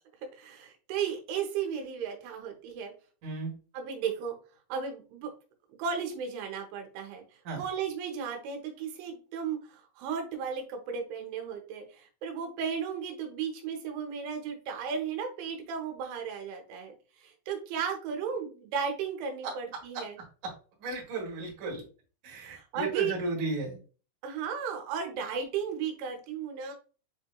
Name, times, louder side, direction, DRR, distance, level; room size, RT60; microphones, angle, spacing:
voice 1, 0.4-2.9 3.7-4.4 4.7-5.3 5.8-7.2 7.6-20.2 22.4-23.1 24.2-26.7, right 7 dB, 90° right, 3 dB, 3.3 m, -35 dB
voice 2, 20.8-21.8 22.2-23.8, right 3 dB, 60° right, -1 dB, 2.5 m, -34 dB
7.7 x 2.9 x 2.2 m, 0.37 s
omnidirectional pair, 5.3 m